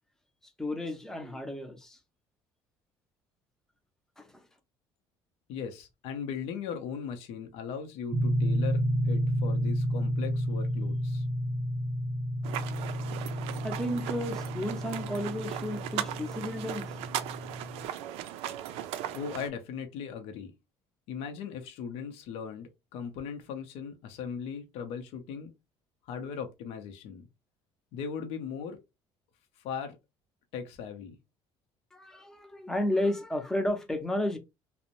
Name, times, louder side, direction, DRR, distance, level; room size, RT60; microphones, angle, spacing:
voice 1, 0.6-2.0 4.2-4.3 13.6-16.9 31.9-34.4, left 1 dB, 5° left, 0.5 m, -32 dB
voice 2, 5.5-11.3 19.1-20.5 21.1-25.5 26.0-27.3 27.9-28.8 29.6-30.0 30.5-31.2, left 7 dB, 85° left, 0.6 m, -38 dB
sound 1, 8.1-17.9, equal, 40° right, 0.7 m, -31 dB
sound 2, 12.4-19.5, right 11 dB, 90° right, 0.4 m, -38 dB
2.6 x 2.0 x 2.8 m
cardioid pair, 140°, 10 cm